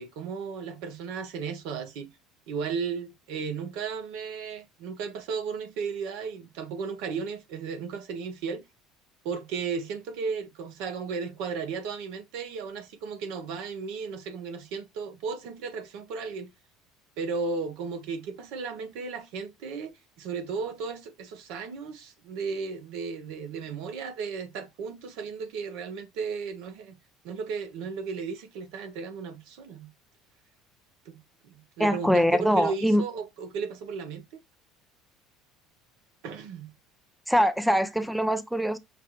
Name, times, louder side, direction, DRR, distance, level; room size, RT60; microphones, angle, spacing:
voice 1, 0.0-2.1 2.5-8.6 9.2-16.5 17.2-26.9 27.2-29.9 31.0-31.2 31.5-34.4 36.2-36.7, right 5 dB, 70° right, 1.0 m, -35 dB
voice 2, 31.8-33.0 37.3-38.8, equal, ahead, 0.6 m, -23 dB
5.9 x 2.4 x 3.0 m
hypercardioid pair, 75°, 0 cm